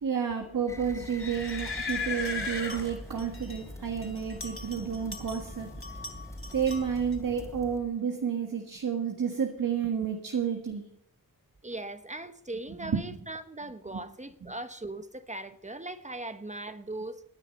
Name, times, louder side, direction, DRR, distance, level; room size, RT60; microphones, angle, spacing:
voice 1, 0.0-5.7 6.5-10.9 12.8-13.0, right 7 dB, 65° right, 1.7 m, -30 dB
sound 1, 0.7-7.8, left 1 dB, 10° left, 2.8 m, -44 dB
sound 2, 1.2-3.6 4.0-5.5 5.8-7.1, left 4 dB, 35° left, 3.2 m, -37 dB
voice 2, 11.6-17.2, right 2 dB, 20° right, 1.0 m, -39 dB
17.5 x 9.9 x 5.4 m
wide cardioid pair, 80°, 35 cm